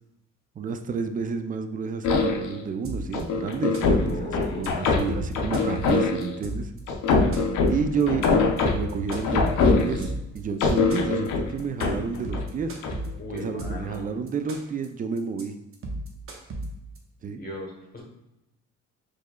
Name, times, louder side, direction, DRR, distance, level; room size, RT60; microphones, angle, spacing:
voice 1, 0.6-6.7 7.7-8.3 8.7-12.7 13.3-15.5 17.2-17.4, right 5 dB, 30° right, 8 dB, 0.4 m, -30 dB
sound 1, 2.0-2.6 3.1-6.4 6.9-10.2 10.6-12.5 12.8-13.1, left 3 dB, 80° left, 0.6 m, -23 dB
sound 2, 2.8-3.2 3.5-4.1 4.4-4.7 5.0-6.8 7.1-7.7 8.0-8.3 8.6-10.4 10.7-11.3 11.6-11.8 12.1-14.0 14.3-14.9 15.2-15.4 15.7-17.0, right 1 dB, 45° right, 0.8 m, -35 dB
voice 2, 3.9-4.7 13.2-14.2 17.3-18.0, left 1 dB, 30° left, -1 dB, 1.0 m, -37 dB
4.5 x 3.1 x 2.3 m, 0.91 s
cardioid pair, 90°, 30 cm